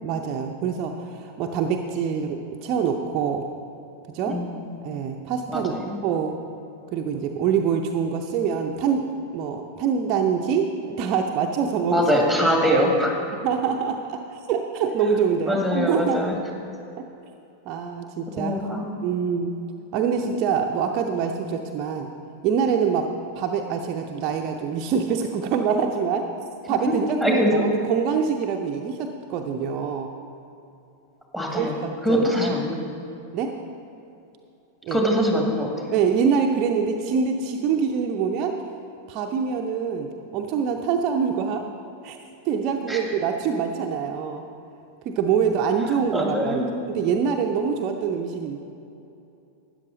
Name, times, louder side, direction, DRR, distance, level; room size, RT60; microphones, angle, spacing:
voice 1, 0.0-3.4 4.1-4.4 4.8-5.8 6.0-6.3 6.9-9.1 9.3-12.1 12.6-12.9 13.4-16.2 17.7-18.6 19.0-19.6 19.9-22.1 22.4-23.1 23.3-26.3 26.7-30.1 31.5-32.6 33.3-33.5 34.8-35.0 35.9-38.6 39.1-41.6 42.0-42.2 42.4-44.4 45.1-48.6, right 6 dB, 40° right, 3 dB, 0.6 m, -25 dB
voice 2, 4.3-4.7 5.5-6.0 11.9-13.1 15.5-16.3 18.4-18.9 26.8-26.9 27.2-27.5 31.3-31.8 32.0-32.8 34.9-35.7 42.9-43.0 46.1-46.7, equal, 5° left, 0 dB, 2.0 m, -23 dB
13.0 x 9.7 x 3.9 m, 2.8 s
figure-of-eight pair, 90°, 0 cm